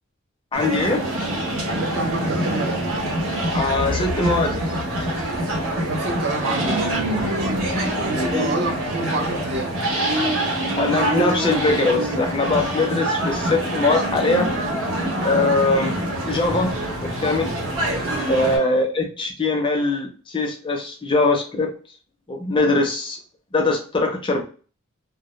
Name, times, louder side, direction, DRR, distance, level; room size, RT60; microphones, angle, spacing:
voice 1, 0.5-1.0 3.5-4.8 8.1-8.4 10.6-14.5 15.2-15.9 16.3-16.7 17.0-17.5 18.3-21.7 22.3-23.2 23.5-24.4, left 2 dB, 25° left, 3 dB, 0.4 m, -22 dB
sound 1, 0.5-18.6, right 1 dB, 75° right, 0.9 m, -25 dB
voice 2, 1.7-2.9 5.8-7.0 8.0-9.8 18.6-18.8, right 3 dB, 55° right, 4 dB, 0.5 m, -28 dB
sound 2, 2.9-8.4, left 3 dB, 75° left, 0.5 m, -35 dB
2.1 x 2.0 x 2.9 m, 0.39 s
head